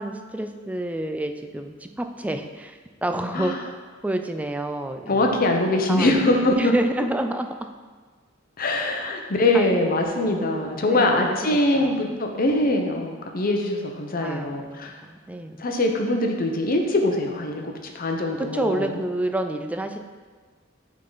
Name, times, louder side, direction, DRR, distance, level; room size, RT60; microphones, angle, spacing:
voice 1, 0.0-3.5 4.0-5.4 5.9-7.7 9.5-11.4 11.7-12.1 14.2-15.6 18.4-20.0, right 1 dB, 5° right, 6 dB, 0.3 m, -29 dB
voice 2, 5.1-6.7 8.6-14.9 15.6-19.0, left 1 dB, 45° left, 2 dB, 0.7 m, -23 dB
8.5 x 3.8 x 3.9 m, 1.5 s
head